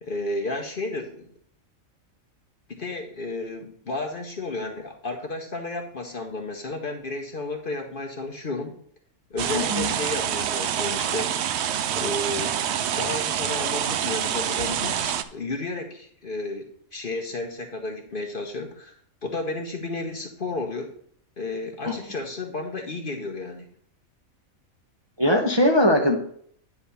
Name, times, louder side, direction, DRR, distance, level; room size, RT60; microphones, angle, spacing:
voice 1, 0.0-1.3 2.7-8.8 9.3-11.3 11.9-12.6 13.0-18.9 19.2-20.9 21.4-23.7, left 2 dB, 45° left, 2 dB, 1.0 m, -32 dB
sound 1, 9.4-15.2, right 9 dB, 65° right, 0.7 m, -26 dB
voice 2, 9.5-9.9 21.8-21.9 25.2-26.2, left 1 dB, 20° right, 0 dB, 0.9 m, -20 dB
9.7 x 3.5 x 6.9 m, 0.62 s
omnidirectional pair, 1.5 m